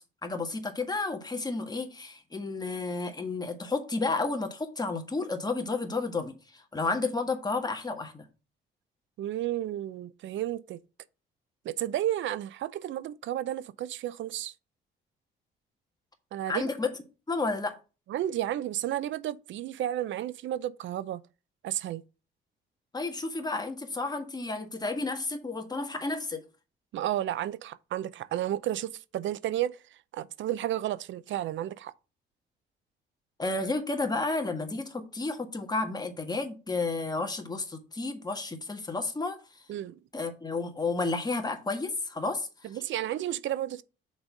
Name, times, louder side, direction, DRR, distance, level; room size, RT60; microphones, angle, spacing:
voice 1, 0.2-6.3 6.7-8.3 16.5-16.9 17.3-17.8 22.9-26.4 33.4-39.4 40.1-42.5, left 3 dB, 20° left, 1.6 m, -31 dB
voice 2, 9.2-10.8 11.6-14.5 16.3-16.7 18.1-21.2 21.6-22.0 26.9-29.8 30.1-31.9 39.7-40.0 42.6-43.8, right 12 dB, 70° right, 0.6 m, -32 dB
6.2 x 4.1 x 6.0 m
cardioid pair, 90°, 20 cm